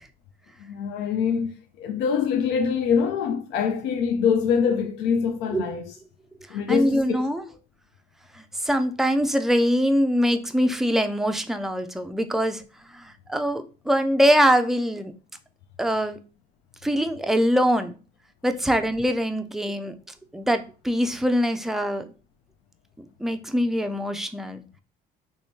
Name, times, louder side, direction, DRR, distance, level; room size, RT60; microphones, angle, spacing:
voice 1, 0.6-5.9 6.5-7.5, left 6 dB, 90° left, 0.4 m, -24 dB
voice 2, 6.7-7.4 8.3-12.6 12.9-15.1 15.8-16.2 16.8-17.9 18.4-19.9 20.3-22.1 23.2-24.6, equal, ahead, 0.3 m, -23 dB
3.5 x 3.1 x 2.7 m
cardioid pair, 110°, 17 cm